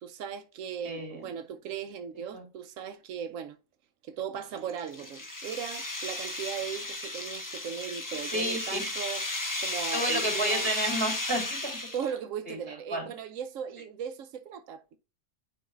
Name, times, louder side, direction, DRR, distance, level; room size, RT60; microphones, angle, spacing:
voice 1, 0.0-3.6 4.0-9.2 9.6-10.7 11.9-15.0, right 8 dB, 90° right, 1.0 m, -38 dB
voice 2, 0.8-1.3 2.3-2.5 8.3-8.9 9.9-11.8 12.5-13.1, right 1 dB, 20° right, 2.6 m, -31 dB
sound 1, 4.4-12.2, left 2 dB, 15° left, 0.8 m, -34 dB
9.3 x 4.7 x 2.3 m
omnidirectional pair, 1.3 m